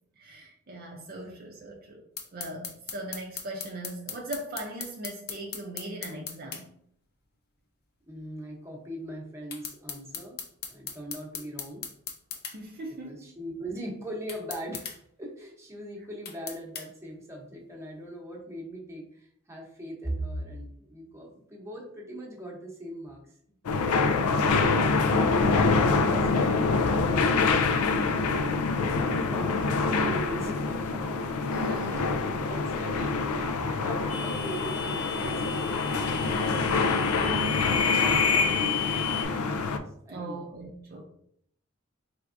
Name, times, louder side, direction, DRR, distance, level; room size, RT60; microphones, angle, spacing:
voice 1, 0.2-2.0 2.3-6.7 12.5-13.3 26.1-26.4 31.5-32.1 40.1-41.0, right 1 dB, 45° right, 0 dB, 0.5 m, -39 dB
sound 1, 2.2-6.6 9.5-12.6 14.3-15.0 16.2-16.9, left 6 dB, 45° left, 0.6 m, -38 dB
voice 2, 8.1-10.4 10.7-11.9 13.0-23.2 24.1-24.3 29.0-31.1 31.7-39.5 39.7-40.4, right 1 dB, 15° right, -2 dB, 0.8 m, -41 dB
sound 2, 23.6-39.8, left 4 dB, 90° left, 0.4 m, -26 dB
sound 3, 34.1-39.2, left 6 dB, 70° left, 1.2 m, -30 dB
4.5 x 3.4 x 2.5 m, 0.68 s
head